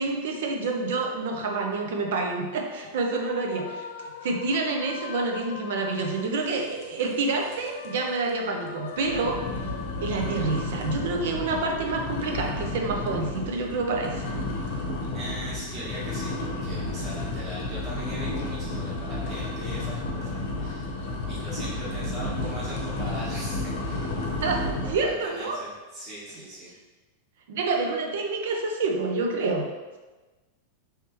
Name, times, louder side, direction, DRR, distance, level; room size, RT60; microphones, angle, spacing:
voice 1, 0.0-3.8 4.2-9.4 10.0-14.3 24.4-25.6 27.5-29.7, right 3 dB, 70° right, 2 dB, 0.6 m, -28 dB
sound 1, 2.1-7.0 7.4-12.2, left 6 dB, 75° left, 0.3 m, -43 dB
sound 2, 6.8-7.2 7.5-7.9 8.3-8.4 9.0-25.1, left 2 dB, 55° left, 0.7 m, -32 dB
voice 2, 15.1-20.8 21.3-24.1 24.8-26.7, right 1 dB, 30° right, -8 dB, 1.3 m, -40 dB
3.2 x 3.2 x 3.0 m, 1.2 s
supercardioid pair, 150°, 0 cm